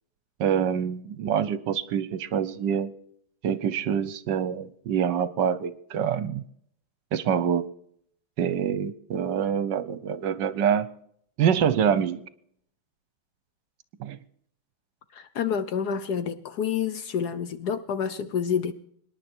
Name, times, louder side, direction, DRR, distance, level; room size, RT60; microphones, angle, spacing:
voice 1, 0.4-2.9 3.4-6.4 7.1-7.7 8.4-10.9 11.4-12.2 14.0-14.2, right 8 dB, 70° right, 1.3 m, -25 dB
voice 2, 15.1-18.7, left 7 dB, 65° left, 1.2 m, -28 dB
25.5 x 10.5 x 4.4 m
omnidirectional pair, 2.2 m